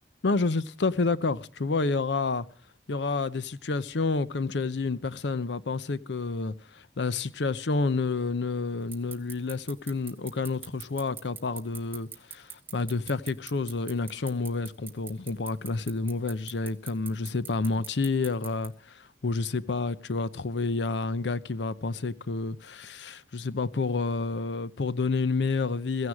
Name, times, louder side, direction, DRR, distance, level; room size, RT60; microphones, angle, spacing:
voice 1, 0.2-2.5 2.9-26.1, left 3 dB, 80° left, 0.7 m, -29 dB
sound 1, 8.9-18.7, right 6 dB, 10° right, 0.8 m, -41 dB
16.0 x 14.5 x 4.8 m
head